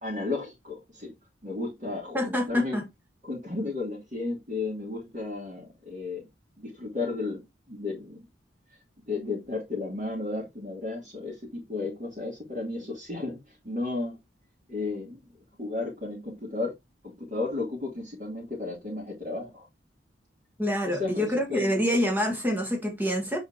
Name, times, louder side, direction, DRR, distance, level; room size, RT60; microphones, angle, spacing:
voice 1, 0.0-1.1 1.4-2.8 3.2-6.3 6.6-8.3 9.1-14.2 14.7-15.2 15.6-16.7 17.0-19.6 20.9-21.8, left 3 dB, 40° right, 3.1 m, -33 dB
voice 2, 2.1-2.9 20.6-23.4, equal, 10° right, 1.7 m, -26 dB
6.8 x 4.9 x 2.9 m
head